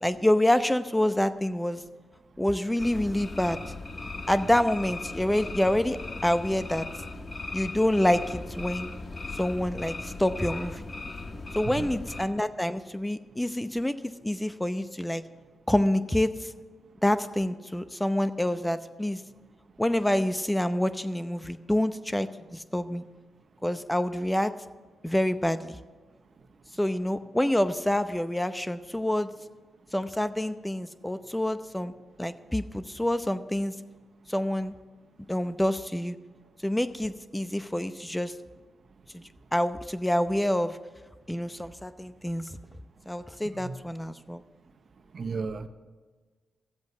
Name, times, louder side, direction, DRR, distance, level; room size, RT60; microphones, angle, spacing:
voice 1, 0.0-1.8 2.4-3.6 4.3-6.9 7.5-8.9 9.3-10.8 11.5-13.9 14.2-15.2 15.7-16.5 17.0-19.2 19.8-23.0 23.6-24.5 25.0-25.8 26.8-29.3 29.9-31.9 32.2-33.7 34.3-34.7 35.3-36.2 36.6-38.3 39.1-40.8 41.3-42.4 43.1-44.4, left 1 dB, 10° left, 11 dB, 0.7 m, -27 dB
sound 1, 2.8-12.3, left 3 dB, 40° left, 1.5 m, -38 dB
voice 2, 45.1-45.7, right 4 dB, 55° right, 10 dB, 0.9 m, -33 dB
13.0 x 8.0 x 8.0 m, 1.4 s
supercardioid pair, 45°, 0 cm